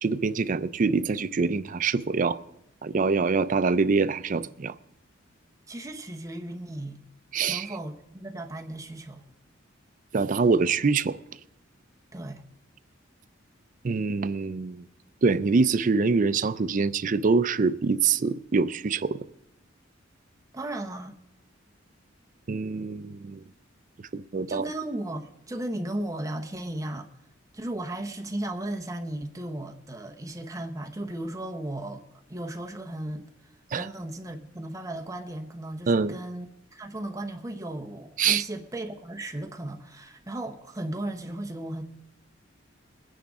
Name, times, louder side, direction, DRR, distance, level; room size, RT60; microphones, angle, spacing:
voice 1, 0.0-2.4 2.8-4.7 7.3-7.7 10.1-11.2 13.8-14.8 15.2-19.2 22.5-23.4 24.1-24.7 33.7-33.9 35.9-36.2 38.2-38.4, right 4 dB, 40° right, 0.4 m, -25 dB
voice 2, 5.7-7.1 7.5-9.2 12.1-12.4 20.5-21.2 24.5-27.1 27.5-32.0 32.3-33.2 33.7-41.8, right 1 dB, 15° right, 0.9 m, -35 dB
22.0 x 10.0 x 3.6 m
head